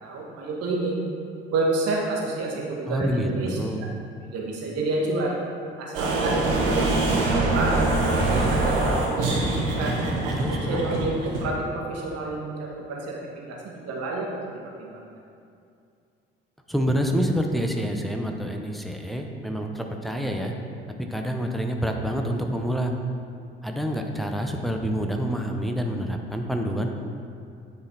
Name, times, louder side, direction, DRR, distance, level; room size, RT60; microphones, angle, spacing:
voice 1, 0.0-0.9 1.5-3.6 4.3-5.4 5.8-8.0 8.3-9.4 9.7-9.9 10.7-13.2 13.5-14.4 14.8-15.0, right 2 dB, 55° right, -2 dB, 1.4 m, -29 dB
voice 2, 2.9-3.9 10.3-10.8 16.7-20.5 21.1-22.9 23.6-26.9, equal, ahead, 3 dB, 0.8 m, -27 dB
sound 1, 5.9-11.4, right 2 dB, 70° right, 1.1 m, -23 dB
9.5 x 4.1 x 4.2 m, 2.4 s
figure-of-eight pair, 45°, 29 cm